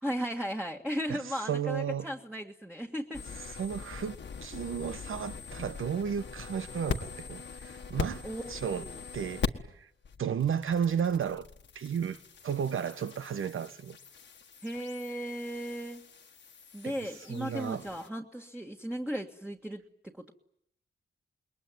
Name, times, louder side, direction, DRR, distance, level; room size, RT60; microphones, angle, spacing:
voice 1, 0.0-3.2 8.2-9.0 14.6-16.0 16.7-20.3, equal, 5° right, 1.7 m, -36 dB
voice 2, 1.5-2.1 3.5-8.9 9.1-9.5 9.7-9.9 10.2-11.4 11.7-14.0 16.8-17.0 17.3-17.9, right 8 dB, 75° right, 1.1 m, -33 dB
sound 1, 3.1-9.8 10.0-18.1, left 5 dB, 60° left, 1.6 m, -41 dB
28.5 x 21.5 x 9.3 m
wide cardioid pair, 135°, 21 cm